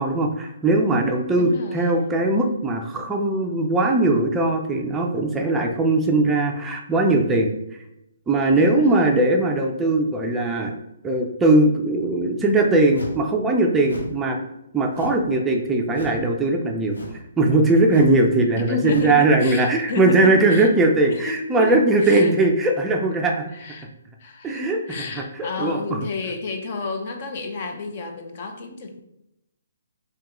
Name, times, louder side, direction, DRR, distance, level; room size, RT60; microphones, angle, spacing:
voice 1, 0.0-7.5 8.3-10.7 11.0-14.4 14.7-23.5 24.4-25.8, right 2 dB, 10° right, 1 dB, 0.4 m, -20 dB
voice 2, 1.4-2.0 8.5-9.1 18.6-20.7 21.1-22.4 23.5-23.9 24.2-29.0, left 3 dB, 45° left, 4 dB, 0.6 m, -31 dB
sound 1, 12.9-13.3 13.8-14.2 14.9-15.3 15.9-16.3 16.9-17.3 17.9-18.2 18.8-19.2, left 1 dB, 90° left, 1.0 m, -35 dB
3.6 x 2.9 x 3.0 m, 0.84 s
hypercardioid pair, 150°, 0 cm